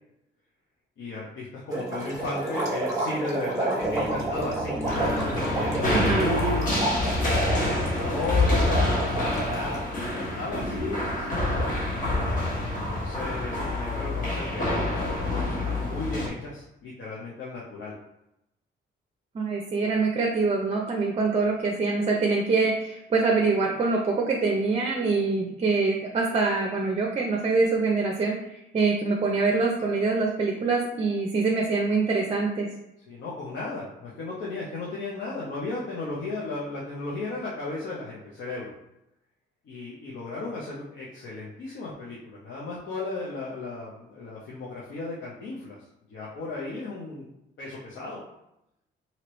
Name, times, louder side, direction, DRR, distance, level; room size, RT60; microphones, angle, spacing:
voice 1, 1.0-11.8 12.9-17.9 33.1-38.7 39.6-47.2 47.6-48.2, left 2 dB, 70° left, -5 dB, 0.7 m, -35 dB
sound 1, 1.7-9.8, right 2 dB, 15° right, 1.1 m, -30 dB
sound 2, 3.8-11.7, equal, 20° left, 0.6 m, -39 dB
sound 3, 4.9-16.3, left 2 dB, 45° left, 1.2 m, -27 dB
voice 2, 5.9-6.3 19.3-28.5 28.7-32.7, right 3 dB, 30° right, 0 dB, 0.5 m, -24 dB
2.9 x 2.8 x 3.0 m, 0.85 s
cardioid pair, 90°, 20 cm